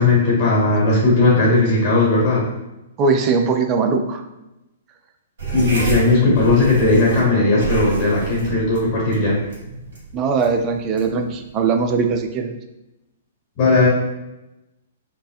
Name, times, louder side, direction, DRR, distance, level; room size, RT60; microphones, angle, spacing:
voice 1, 0.0-2.4 5.5-9.4 13.6-13.9, left 2 dB, 35° left, -5 dB, 1.4 m, -17 dB
voice 2, 3.0-4.2 10.1-12.6, right 4 dB, 25° right, 6 dB, 0.4 m, -20 dB
sound 1, 5.4-12.3, right 3 dB, 55° right, 1.4 m, -29 dB
5.3 x 2.4 x 2.4 m, 0.95 s
figure-of-eight pair, 115°, 0 cm